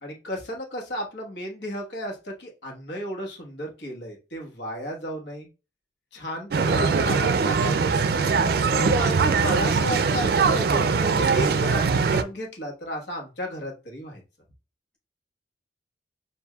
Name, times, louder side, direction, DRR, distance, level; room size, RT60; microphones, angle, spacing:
voice 1, 0.0-5.5 6.1-8.4 9.3-14.2, equal, 80° left, 1 dB, 1.3 m, -34 dB
sound 1, 6.5-12.2, right 5 dB, 60° right, 0.4 m, -21 dB
voice 2, 8.6-9.6, left 2 dB, 5° left, -2 dB, 1.0 m, -34 dB
6.7 x 2.6 x 2.3 m, 0.30 s
head